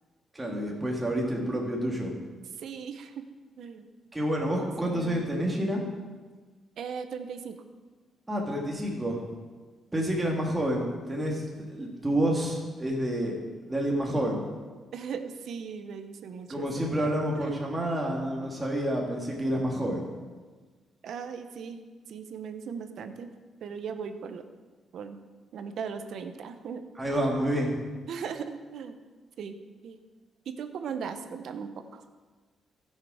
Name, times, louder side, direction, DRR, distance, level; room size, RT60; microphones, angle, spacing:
voice 1, 0.3-2.1 4.1-5.8 8.3-9.2 9.9-11.4 11.7-13.4 13.7-14.4 16.5-20.0 27.0-27.8, equal, 15° right, -1 dB, 2.0 m, -29 dB
voice 2, 2.6-3.3 3.6-3.9 4.6-5.2 6.8-7.6 14.9-16.7 17.0-17.6 21.0-21.8 22.1-23.3 23.6-24.4 24.9-25.2 25.5-26.8 27.1-27.2 28.1-29.0 29.4-30.0 30.5-32.0, right 6 dB, 70° right, 9 dB, 0.8 m, -38 dB
15.5 x 6.6 x 4.9 m, 1.4 s
cardioid pair, 105°, 0 cm